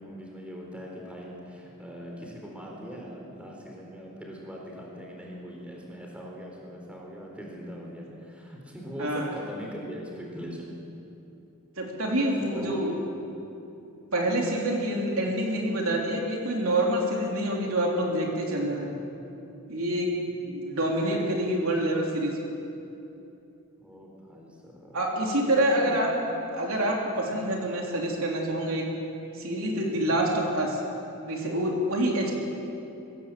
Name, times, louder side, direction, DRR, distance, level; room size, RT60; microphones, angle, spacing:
voice 1, 0.0-10.7 12.4-13.0 20.0-20.3 23.8-25.0 25.4-26.2 32.1-32.3, equal, 5° right, -2 dB, 4.0 m, -41 dB
voice 2, 9.0-9.3 11.8-12.9 14.1-19.0 19.7-20.1 20.5-22.3 24.9-26.1 26.5-28.9 29.3-30.8 31.2-32.3, right 1 dB, 65° right, -1 dB, 3.5 m, -27 dB
24.0 x 17.0 x 7.8 m, 2.9 s
head